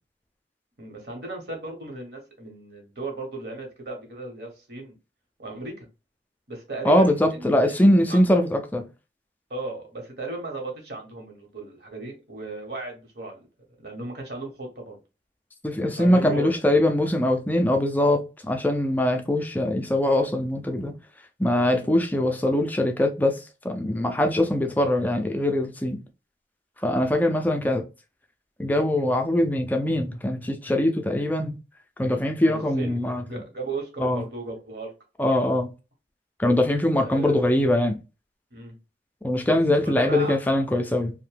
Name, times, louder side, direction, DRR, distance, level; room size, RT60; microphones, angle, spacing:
voice 1, 0.8-4.9 5.4-5.9 6.5-7.6 8.1-8.2 9.5-13.5 13.8-15.0 15.8-16.6 21.7-21.9 32.5-33.0 33.3-34.9 37.0-37.4 38.5-38.8 39.8-40.4, right 2 dB, 65° right, 1.1 m, -36 dB
voice 2, 6.8-8.9 15.6-20.9 21.4-26.0 26.8-27.9 28.6-31.6 32.0-33.2 34.0-34.2 35.2-35.7 36.4-38.0 39.2-41.1, left 1 dB, 10° left, 0.3 m, -22 dB
2.7 x 2.1 x 3.2 m
head